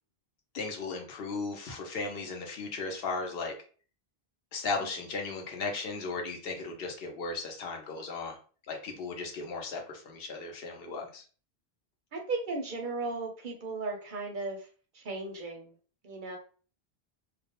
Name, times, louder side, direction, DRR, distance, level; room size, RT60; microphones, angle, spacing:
voice 1, 0.5-3.5 4.5-8.4 8.7-11.2, left 3 dB, 70° left, 2 dB, 0.8 m, -36 dB
voice 2, 12.1-14.6 15.0-15.7 16.0-16.4, right 3 dB, 60° right, 3 dB, 0.6 m, -35 dB
2.2 x 2.1 x 2.8 m, 0.39 s
omnidirectional pair, 1.0 m